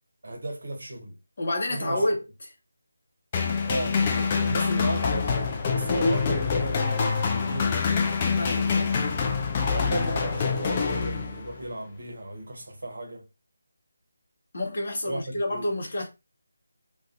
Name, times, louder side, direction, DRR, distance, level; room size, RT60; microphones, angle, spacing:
voice 1, 0.2-1.2 1.7-2.0 3.6-4.0 4.4-7.8 9.6-13.3 15.0-15.7, right 1 dB, 55° right, 0.8 m, -34 dB
voice 2, 1.4-2.2 8.4-8.9 14.5-16.1, left 1 dB, 45° left, 0.7 m, -28 dB
sound 1, 3.3-11.7, left 5 dB, 25° left, 0.4 m, -25 dB
2.5 x 2.2 x 2.4 m
figure-of-eight pair, 155°, 0 cm